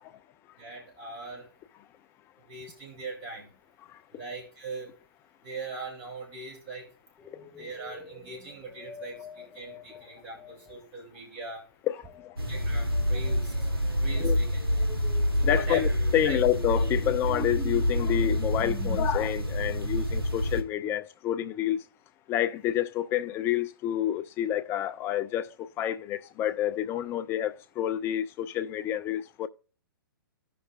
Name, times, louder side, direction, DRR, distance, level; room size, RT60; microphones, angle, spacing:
voice 1, 0.6-1.5 2.4-3.5 4.1-4.9 5.4-6.9 7.6-11.6 12.5-13.5 14.0-14.6 15.4-15.8 16.2-16.4, right 3 dB, 30° right, 3.2 m, -40 dB
sound 1, 7.2-10.9 12.0-19.0, left 1 dB, ahead, 0.8 m, -46 dB
sound 2, 12.4-20.6, left 1 dB, 85° right, 1.3 m, -27 dB
voice 2, 15.4-21.8 22.3-29.5, left 11 dB, 20° left, 0.4 m, -28 dB
16.0 x 5.8 x 2.4 m
figure-of-eight pair, 120°, 12 cm